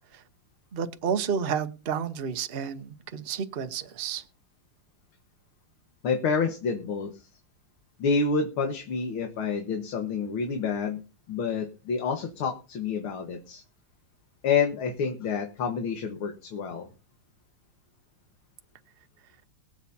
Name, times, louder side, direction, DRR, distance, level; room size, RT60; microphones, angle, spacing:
voice 1, 0.7-4.2, right 7 dB, 40° right, 0.9 m, -31 dB
voice 2, 6.0-7.2 8.0-11.0 11.3-13.6 14.4-16.9, left 5 dB, 85° left, 2.4 m, -28 dB
23.0 x 8.3 x 2.8 m
omnidirectional pair, 2.2 m